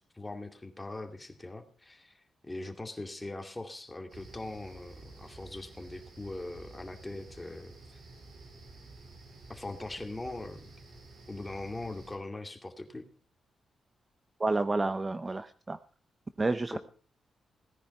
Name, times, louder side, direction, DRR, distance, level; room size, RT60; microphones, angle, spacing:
voice 1, 0.1-7.7 9.5-10.7 11.3-13.1 16.7-16.8, left 2 dB, 15° left, 6 dB, 2.4 m, -41 dB
sound 1, 4.1-12.2, right 2 dB, 70° right, 4.3 m, -51 dB
voice 2, 14.4-15.8 16.4-16.8, right 3 dB, 25° right, 12 dB, 0.7 m, -30 dB
17.5 x 10.0 x 5.4 m, 0.38 s
cardioid pair, 90°, 0 cm